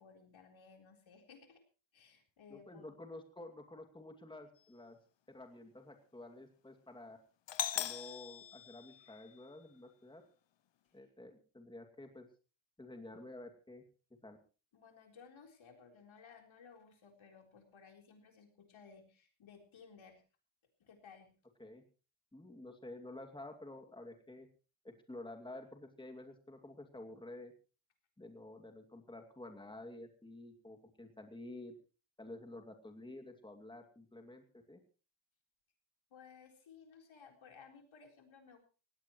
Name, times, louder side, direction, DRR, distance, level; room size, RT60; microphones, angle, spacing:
voice 1, 0.0-1.6 1.9-2.9 14.7-20.2 20.8-21.3 36.1-38.6, left 6 dB, 85° left, 3 dB, 4.1 m, -58 dB
voice 2, 2.5-5.0 5.3-7.2 7.7-10.2 10.9-12.3 12.8-13.8 14.2-14.4 21.6-21.8 22.3-24.5 24.8-27.5 28.2-31.7 32.2-34.8, left 2 dB, 10° left, 4 dB, 2.5 m, -51 dB
Doorbell, 7.5-9.5, left 11 dB, 65° left, 0.8 m, -40 dB
19.0 x 17.0 x 3.1 m, 0.35 s
wide cardioid pair, 135°, 46 cm